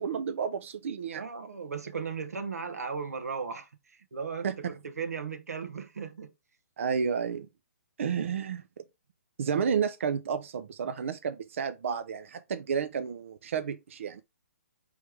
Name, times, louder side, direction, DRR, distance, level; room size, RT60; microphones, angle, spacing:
voice 1, 0.0-1.2 4.4-4.6 6.8-7.5 8.0-8.6 9.4-14.2, right 6 dB, 55° right, 0.5 m, -31 dB
voice 2, 1.1-6.3, right 5 dB, 90° right, 0.9 m, -37 dB
4.8 x 3.1 x 3.3 m
hypercardioid pair, 165°, 8 cm